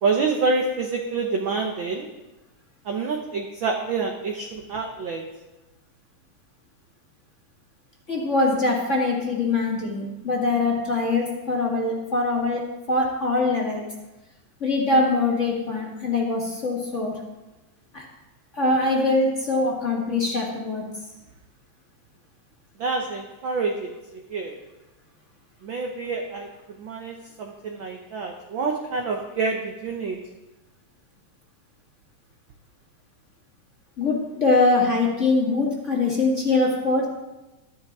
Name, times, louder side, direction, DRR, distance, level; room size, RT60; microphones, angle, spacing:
voice 1, 0.0-2.1 2.9-5.3 22.8-23.9 24.3-24.5 25.6-26.5 26.8-30.2, right 4 dB, 75° right, 2 dB, 1.1 m, -27 dB
voice 2, 8.1-12.6 12.9-13.8 14.6-17.1 17.9-18.1 18.5-20.8 34.0-37.0, left 3 dB, 30° left, -3 dB, 1.8 m, -23 dB
12.5 x 12.0 x 3.6 m, 1.0 s
omnidirectional pair, 3.4 m